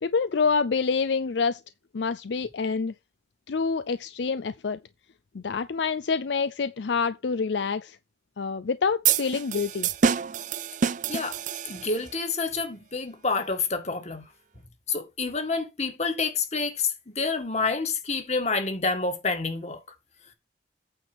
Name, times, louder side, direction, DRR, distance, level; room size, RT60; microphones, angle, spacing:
voice 1, 0.0-1.6 1.9-2.9 3.5-4.8 5.3-8.0 8.4-9.9, left 5 dB, 65° left, 0.5 m, -27 dB
sound 1, 9.0-12.1, right 7 dB, 45° right, 0.4 m, -27 dB
voice 2, 11.7-14.2 14.9-19.8, left 4 dB, 35° left, 1.9 m, -28 dB
8.9 x 4.5 x 6.2 m
head